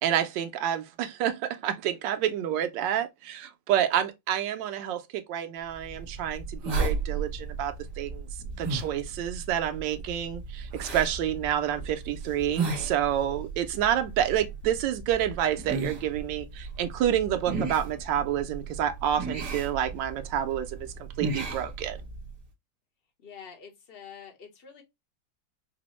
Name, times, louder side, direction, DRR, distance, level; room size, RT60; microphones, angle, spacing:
voice 1, 0.0-5.0 5.3-8.2 8.6-20.9 21.2-22.0, right 10 dB, 90° right, 1.3 m, -28 dB
sound 1, 5.8-22.4, right 3 dB, 50° right, 1.4 m, -35 dB
voice 2, 23.2-24.8, left 7 dB, 40° left, 0.9 m, -46 dB
4.8 x 2.0 x 2.9 m
omnidirectional pair, 1.9 m